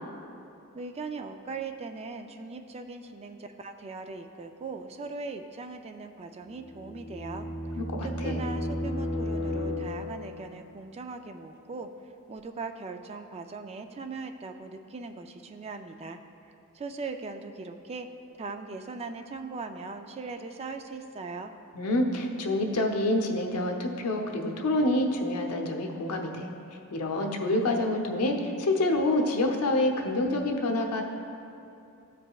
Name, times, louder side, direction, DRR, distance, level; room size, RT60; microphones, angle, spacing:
voice 1, 0.7-7.5 8.0-11.9 12.3-16.2 16.7-18.1 18.4-21.5, right 4 dB, 30° right, 7 dB, 0.3 m, -39 dB
sound 1, 6.5-10.4, left 1 dB, 55° left, 0.8 m, -33 dB
voice 2, 7.8-8.4 21.7-26.5 26.9-31.0, left 1 dB, 85° left, 3 dB, 0.8 m, -27 dB
14.5 x 5.0 x 2.3 m, 2.7 s
head